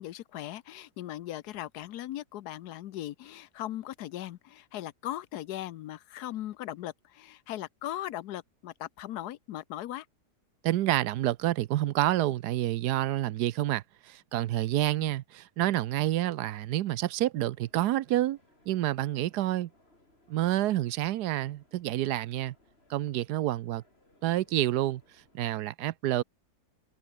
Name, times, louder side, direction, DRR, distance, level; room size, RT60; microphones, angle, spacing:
voice 1, 0.0-10.1 15.0-15.1, left 13 dB, 80° left, 1.2 m, -39 dB
voice 2, 10.6-18.4 18.7-19.7 20.3-22.5 22.9-23.8 24.2-25.0 25.3-26.2, right 14 dB, 85° right, 1.2 m, -28 dB
sound 1, 17.5-25.5, left 1 dB, 40° left, 6.4 m, -65 dB
omnidirectional pair, 1.7 m